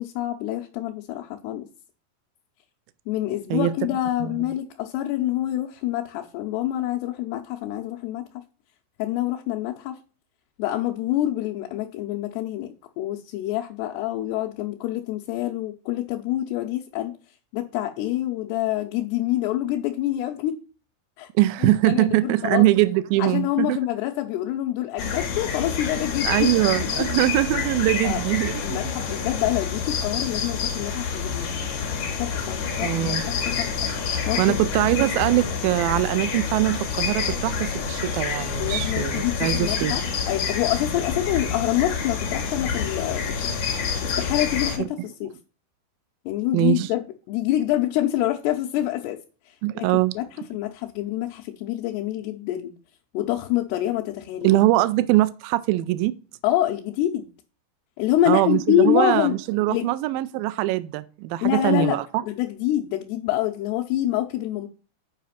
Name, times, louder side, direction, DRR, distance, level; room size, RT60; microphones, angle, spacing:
voice 1, 0.0-1.7 3.1-8.3 9.0-10.0 10.6-12.7 13.0-17.1 17.5-20.6 21.2-21.3 21.6-22.7 23.2-26.5 27.0-27.1 28.0-28.2 28.6-31.5 32.2-33.7 34.3-34.4 38.6-43.6 44.0-45.3 46.3-47.0 47.3-49.2 49.5-49.9 50.2-52.7 53.1-54.6 56.4-57.3 58.0-59.4 59.7-59.8 61.4-64.7, left 13 dB, 85° left, 2.9 m, -26 dB
voice 2, 21.4-23.8 26.3-28.8 32.8-33.2 34.4-40.0 46.5-46.9 49.6-50.1 54.4-56.2 58.3-62.0, right 16 dB, 90° right, 2.0 m, -22 dB
sound 1, 25.0-44.8, left 6 dB, 60° left, 3.1 m, -28 dB
8.4 x 5.0 x 5.7 m
omnidirectional pair, 4.6 m